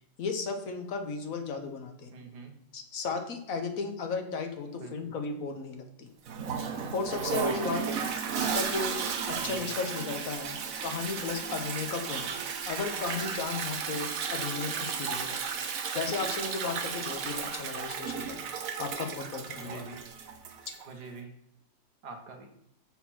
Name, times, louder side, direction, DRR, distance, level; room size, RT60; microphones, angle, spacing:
voice 1, 0.2-2.1 2.7-6.1 6.9-7.8 8.4-9.0 9.3-15.5 15.9-18.4 18.8-19.8, left 4 dB, 60° left, 5 dB, 1.5 m, -35 dB
voice 2, 2.1-2.6 4.8-5.0 9.4-9.7 19.6-20.0 20.9-21.3 22.0-22.5, right 4 dB, 85° right, 4 dB, 1.9 m, -44 dB
Toilet flush, 6.3-20.9, right 6 dB, 60° right, 1.2 m, -34 dB
6.6 x 5.6 x 5.9 m, 0.77 s
omnidirectional pair, 1.7 m